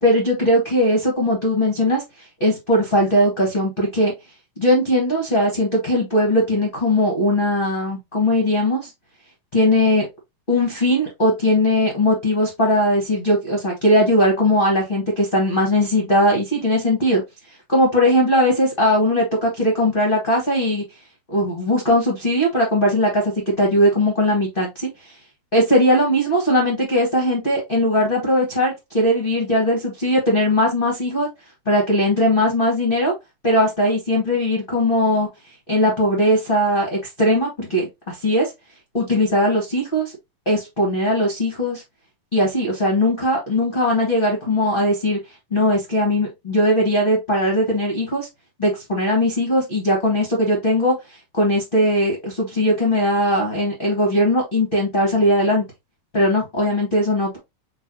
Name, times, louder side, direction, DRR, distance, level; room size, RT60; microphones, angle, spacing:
voice 1, 0.0-4.1 4.6-8.9 9.5-10.1 10.5-17.2 17.7-20.8 21.3-25.2 25.5-31.3 31.6-33.1 33.4-35.3 35.7-38.5 38.9-40.1 40.4-41.8 42.3-45.2 45.5-48.3 48.6-55.7 56.1-57.4, left 1 dB, 30° left, 1.0 m, -19 dB
5.4 x 3.2 x 3.0 m
omnidirectional pair, 3.5 m